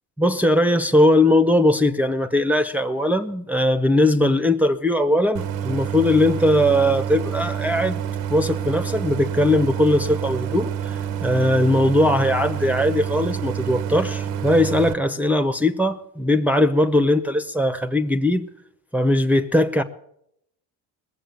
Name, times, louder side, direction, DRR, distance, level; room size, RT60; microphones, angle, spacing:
voice 1, 0.2-8.0 8.3-18.5 18.9-19.8, left 1 dB, 5° right, 0.8 m, -19 dB
Idling, 5.4-14.9, right 9 dB, 90° right, 1.1 m, -28 dB
20.0 x 7.5 x 8.2 m
supercardioid pair, 90°, 44 cm